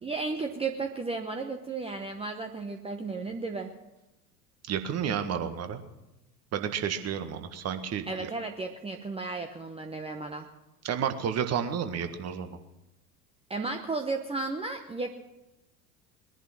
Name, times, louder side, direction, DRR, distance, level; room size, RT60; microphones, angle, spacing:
voice 1, 0.0-3.7 8.1-10.5 13.5-15.1, right 3 dB, 10° right, 4 dB, 1.0 m, -34 dB
voice 2, 4.7-5.8 6.5-8.3 10.8-12.6, right 8 dB, 30° right, 8 dB, 1.7 m, -31 dB
20.5 x 11.0 x 6.2 m, 0.96 s
figure-of-eight pair, 80°, 49 cm